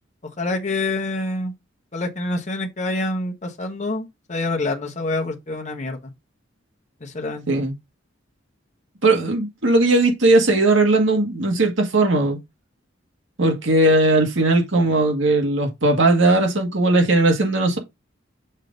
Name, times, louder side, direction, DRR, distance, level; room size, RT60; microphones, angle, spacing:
voice 1, 0.4-1.5 1.9-6.1 7.0-7.4 13.9-14.0, left 2 dB, 40° left, 1.0 m, -26 dB
voice 2, 9.0-12.4 13.4-17.8, right 2 dB, 70° right, 1.8 m, -18 dB
6.4 x 3.8 x 3.9 m
head